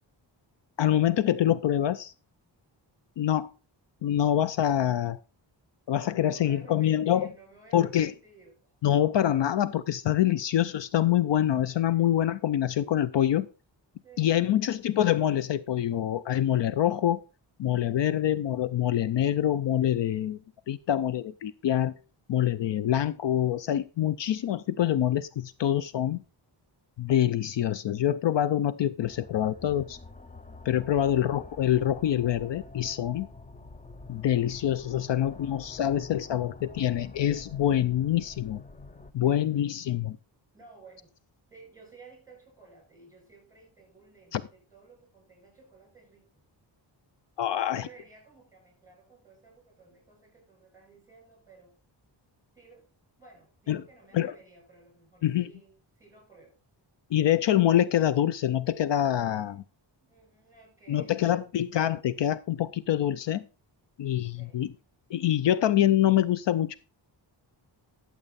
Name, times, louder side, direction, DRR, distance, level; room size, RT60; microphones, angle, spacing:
voice 1, 0.8-2.1 3.2-3.5 4.0-5.2 5.9-7.3 7.7-8.1 8.8-13.5 14.2-17.2 17.6-20.4 20.7-21.9 22.3-26.2 27.0-30.0 30.7-33.3 34.1-38.6 39.1-40.2 44.3-44.4 47.4-47.9 53.7-53.8 54.1-54.3 55.2-55.5 57.1-59.6 60.9-63.4 64.0-64.7 65.1-66.8, left 11 dB, 70° left, 0.6 m, -25 dB
voice 2, 6.1-8.8 10.3-10.4 11.9-12.0 14.0-14.9 35.0-36.8 39.0-40.0 40.5-41.1 41.5-46.3 47.4-51.8 52.5-52.9 53.2-56.6 60.0-61.5 64.2-64.6, right 3 dB, 10° right, 6.7 m, -56 dB
sound 1, 29.0-39.1, left 3 dB, 20° left, 0.5 m, -47 dB
12.0 x 7.4 x 4.1 m
wide cardioid pair, 170°, 45 cm